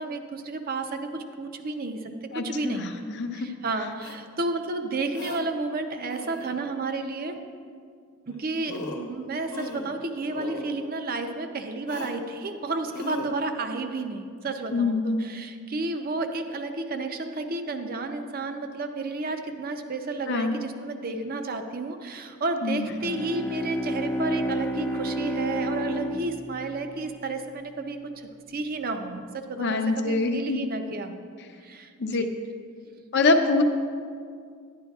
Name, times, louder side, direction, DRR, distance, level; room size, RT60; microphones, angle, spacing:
voice 1, 0.0-2.1 2.4-2.9 3.3-7.4 8.3-31.2 31.6-32.3, right 3 dB, 45° right, 6 dB, 0.6 m, -32 dB
voice 2, 2.3-3.5 14.7-15.2 20.3-20.6 22.6-22.9 29.6-30.6 32.0-32.2 33.1-33.6, left 3 dB, 55° left, 5 dB, 0.6 m, -25 dB
sound 1, 4.0-4.2 5.1-5.4 6.1-6.6 8.3-8.4 8.7-9.1 9.5-10.0 10.3-10.7 11.9-12.2 12.9-13.3, left 2 dB, 85° left, 0.9 m, -37 dB
Bowed string instrument, 22.9-27.7, equal, 10° left, 0.3 m, -31 dB
11.0 x 10.5 x 2.4 m, 2.2 s
head